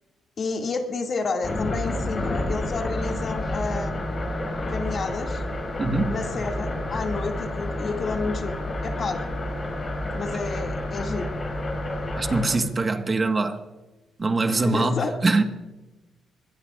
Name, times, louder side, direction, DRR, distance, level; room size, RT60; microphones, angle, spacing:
voice 1, 0.4-4.0 4.7-5.4 6.1-8.5 8.8-9.2 10.1-11.3 14.5-15.1, left 4 dB, 45° left, 2.3 m, -30 dB
sound 1, 1.4-12.6, left 1 dB, 30° left, 6.3 m, -29 dB
voice 2, 5.8-6.2 12.2-13.6 14.2-15.4, right 3 dB, 30° right, 1.5 m, -23 dB
23.5 x 21.0 x 2.5 m
cardioid pair, 90°, 0 cm